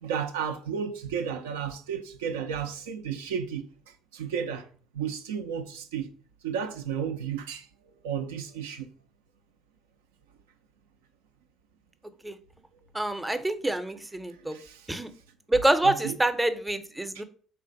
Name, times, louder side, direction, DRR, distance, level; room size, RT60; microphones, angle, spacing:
voice 1, 0.0-3.6 4.1-4.7 4.9-6.1 6.4-7.7 8.0-8.9 14.5-14.9 15.8-16.2, right 7 dB, 90° right, 0.3 m, -32 dB
voice 2, 12.9-14.6 14.9-15.1 15.5-17.2, right 1 dB, 10° right, 0.5 m, -26 dB
3.3 x 2.4 x 3.8 m
hypercardioid pair, 60°, 0 cm